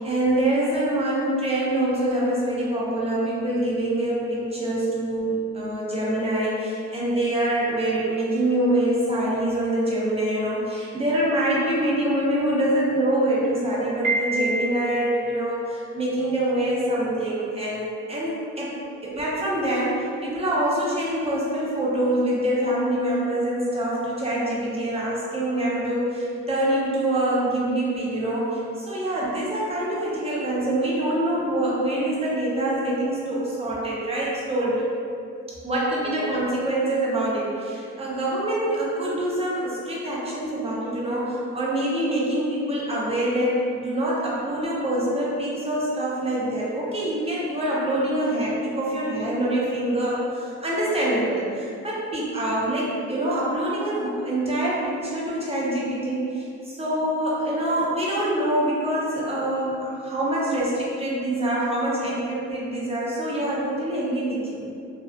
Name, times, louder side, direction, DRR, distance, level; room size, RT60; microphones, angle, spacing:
voice 1, 0.0-18.7 19.0-34.9 35.6-64.7, right 1 dB, 20° right, -6 dB, 0.6 m, -25 dB
Piano, 14.0-15.1, right 2 dB, 65° right, 0.7 m, -26 dB
2.5 x 2.3 x 2.2 m, 2.5 s
cardioid pair, 90°, 30 cm